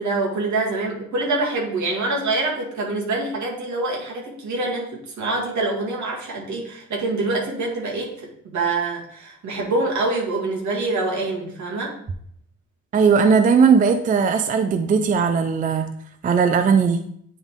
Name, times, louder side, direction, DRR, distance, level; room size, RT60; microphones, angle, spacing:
voice 1, 0.0-12.0, right 2 dB, 70° right, -2 dB, 1.9 m, -25 dB
voice 2, 12.9-15.9 16.2-17.0, right 6 dB, 30° right, 8 dB, 0.4 m, -18 dB
9.2 x 3.5 x 3.6 m, 0.66 s
wide cardioid pair, 155°, 30 cm